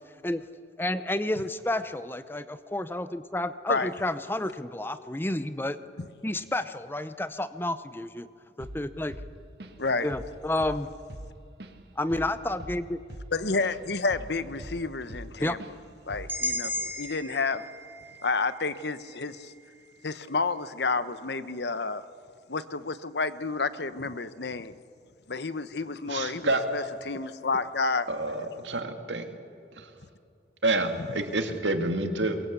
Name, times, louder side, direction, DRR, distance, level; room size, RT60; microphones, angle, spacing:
voice 1, 0.8-5.8 6.2-8.3 8.6-9.2 10.0-10.9 12.0-13.0 15.4-15.6, left 1 dB, 10° left, 12 dB, 0.7 m, -30 dB
Drum kit / Drum, 8.6-8.9 9.1-9.9 10.1-10.4 10.6-13.8 14.1-15.3 15.6-15.8 16.1-16.4, right 1 dB, 65° right, 1.8 m, -42 dB
voice 2, 9.8-10.1 13.3-15.6 16.1-17.6 18.2-19.5 20.0-22.0 22.5-24.8 25.3-28.1, left 4 dB, 70° left, 13 dB, 1.0 m, -30 dB
sound 1, 16.3-20.3, left 1 dB, 10° right, 1.6 m, -36 dB
voice 3, 26.0-26.6 28.1-29.2 29.8-29.9 30.6-32.4, right 2 dB, 85° right, 6 dB, 2.3 m, -28 dB
22.5 x 22.5 x 8.4 m, 2.4 s
head